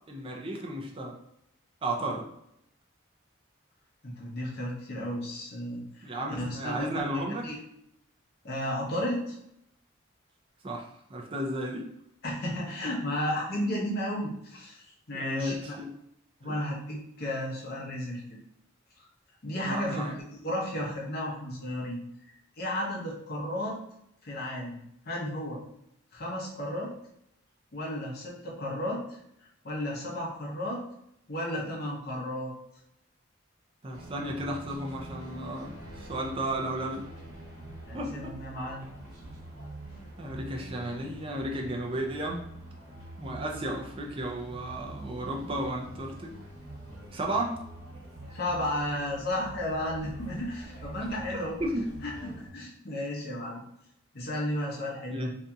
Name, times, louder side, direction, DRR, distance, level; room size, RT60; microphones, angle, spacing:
voice 1, 0.1-1.1 1.8-2.3 6.0-7.5 10.6-11.8 15.1-15.9 16.4-16.6 19.6-20.2 33.8-37.0 37.9-38.3 40.2-42.4 43.2-46.3 47.1-47.6 51.6-51.8 55.1-55.4, right 1 dB, 25° right, 0 dB, 0.4 m, -33 dB
voice 2, 4.0-7.5 8.4-9.4 12.2-15.7 16.4-18.4 19.0-19.1 19.4-20.1 20.4-22.0 22.6-23.8 24.2-24.8 25.1-25.6 26.1-26.9 27.7-29.2 29.6-30.8 31.3-32.5 37.9-38.8 48.3-51.6 52.0-53.6 54.1-55.2, left 1 dB, 50° left, -3 dB, 0.7 m, -33 dB
sound 1, 33.9-52.5, right 1 dB, 85° right, 0.9 m, -45 dB
2.7 x 2.6 x 2.3 m, 0.76 s
head